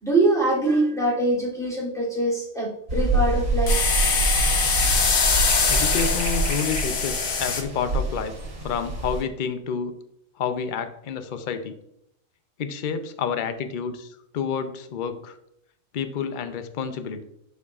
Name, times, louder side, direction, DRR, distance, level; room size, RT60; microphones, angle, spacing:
voice 1, 0.0-4.3, right 2 dB, ahead, -7 dB, 2.9 m, -24 dB
sound 1, 2.9-9.2, right 2 dB, 70° right, 2.3 m, -26 dB
sound 2, 3.7-7.6, left 5 dB, 90° left, 1.4 m, -23 dB
voice 2, 5.7-8.3 8.6-9.9 10.4-11.7 12.6-15.4 15.9-17.2, left 6 dB, 50° left, 9 dB, 0.6 m, -29 dB
11.5 x 4.6 x 2.4 m, 0.78 s
omnidirectional pair, 1.4 m